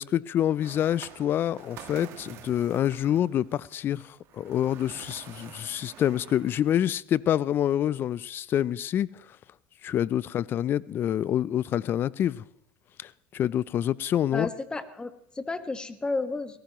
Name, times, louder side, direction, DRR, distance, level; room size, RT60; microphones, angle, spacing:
voice 1, 0.0-9.1 9.8-12.4 13.0-14.5, left 11 dB, 45° left, 0.5 m, -27 dB
sound 1, 0.6-6.8, right 11 dB, 55° right, 1.4 m, -48 dB
voice 2, 14.3-16.6, left 3 dB, 15° left, 1.5 m, -32 dB
20.0 x 18.0 x 3.1 m
supercardioid pair, 90°, 5 cm